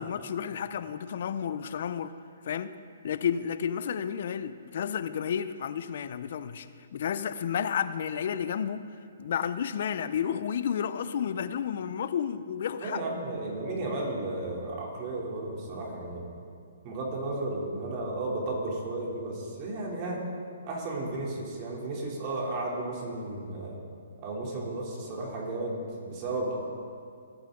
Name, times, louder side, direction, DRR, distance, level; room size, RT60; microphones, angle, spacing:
voice 1, 0.0-2.1 2.4-2.7 3.0-6.7 6.9-8.8 9.2-13.0, left 8 dB, 60° left, 12 dB, 0.6 m, -31 dB
voice 2, 12.8-16.3 16.8-20.2 20.7-23.7 24.2-26.5, right 2 dB, 35° right, -3 dB, 3.2 m, -33 dB
19.0 x 9.0 x 3.9 m, 2.4 s
hypercardioid pair, 135°, 0 cm